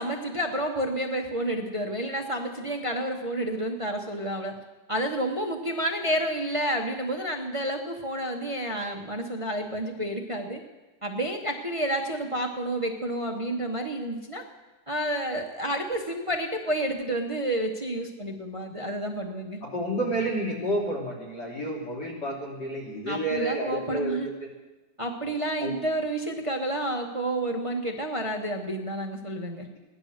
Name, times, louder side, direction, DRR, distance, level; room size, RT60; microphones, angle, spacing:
voice 1, 0.0-4.6 4.9-10.6 11.0-14.4 14.9-19.6 23.1-24.3 25.0-29.7, right 1 dB, 25° right, 3 dB, 0.8 m, -30 dB
voice 2, 19.6-24.5 25.6-25.7, right 1 dB, 60° left, -2 dB, 3.6 m, -30 dB
17.0 x 10.5 x 6.5 m, 1.2 s
omnidirectional pair, 2.0 m